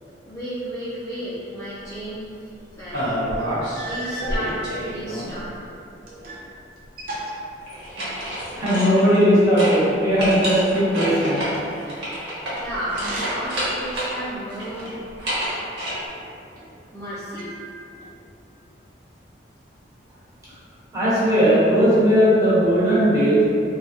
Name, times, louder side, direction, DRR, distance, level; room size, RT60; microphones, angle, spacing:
voice 1, 0.3-2.2 2.8-3.1 3.8-5.5 12.6-14.9 16.9-17.5, right 1 dB, 15° left, -11 dB, 0.5 m, -32 dB
sound 1, 2.9-3.8 4.2-5.5 7.7-9.3 9.6-9.8 10.2-14.2 14.5-15.9, equal, 85° right, 1.2 m, -28 dB
sound 2, 3.7-4.5 5.3-6.5 6.8-8.3 12.8-13.6 14.1-15.1 15.9-16.7 17.4-18.1, right 1 dB, 55° right, 0.5 m, -36 dB
voice 2, 8.5-11.4 20.9-23.4, equal, 20° right, -12 dB, 1.2 m, -18 dB
3.3 x 2.3 x 2.7 m, 2.6 s
head